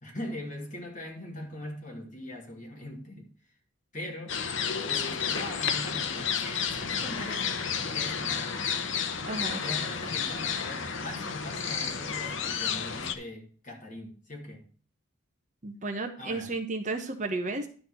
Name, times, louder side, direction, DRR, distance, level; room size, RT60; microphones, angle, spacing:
voice 1, 0.0-3.3 3.9-4.4 4.9-7.5 7.8-8.6 9.6-14.6 16.2-16.5, left 1 dB, 35° left, 2.9 m, -41 dB
sound 1, 4.3-13.1, left 6 dB, 70° left, 1.0 m, -31 dB
voice 2, 9.3-9.6 15.6-17.7, right 3 dB, 35° right, 1.0 m, -33 dB
11.0 x 4.3 x 6.1 m
head